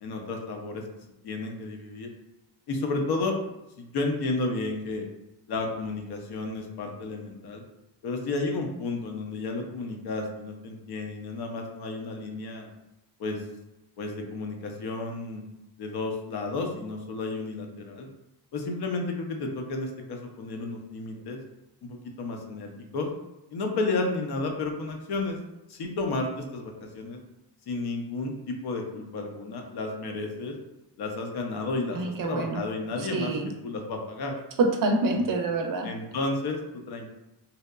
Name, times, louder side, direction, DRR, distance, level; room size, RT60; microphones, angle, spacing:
voice 1, 0.0-0.8 1.2-2.1 2.7-3.4 3.8-5.1 5.5-7.6 8.0-12.7 13.2-13.4 14.0-15.4 15.8-18.1 18.5-21.4 21.8-23.1 23.5-25.4 25.7-27.2 27.7-30.5 31.0-33.3 33.6-34.3 35.1-35.2 35.8-37.1, left 3 dB, 65° left, 2 dB, 0.6 m, -32 dB
voice 2, 31.9-32.6 33.0-33.5 34.6-35.9, right 2 dB, 50° right, 4 dB, 0.5 m, -26 dB
2.7 x 2.1 x 2.3 m, 0.91 s
cardioid pair, 95°, 43 cm